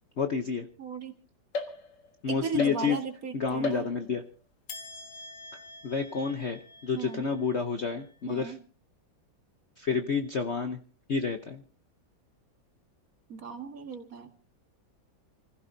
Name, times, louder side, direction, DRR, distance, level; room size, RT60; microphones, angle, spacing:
voice 1, 0.2-0.6 2.2-3.0 3.3-4.2 5.8-8.5 9.8-10.8 11.1-11.6, left 5 dB, 50° left, 7 dB, 0.9 m, -29 dB
voice 2, 0.8-1.1 2.3-3.9 6.9-7.3 8.3-8.6 13.3-14.3, right 5 dB, 45° right, 6 dB, 2.1 m, -37 dB
sound 1, 1.5-2.2 2.6-3.2 3.6-4.3 4.7-8.1, left 3 dB, 65° left, 2.3 m, -40 dB
28.5 x 15.5 x 2.7 m, 0.37 s
omnidirectional pair, 2.1 m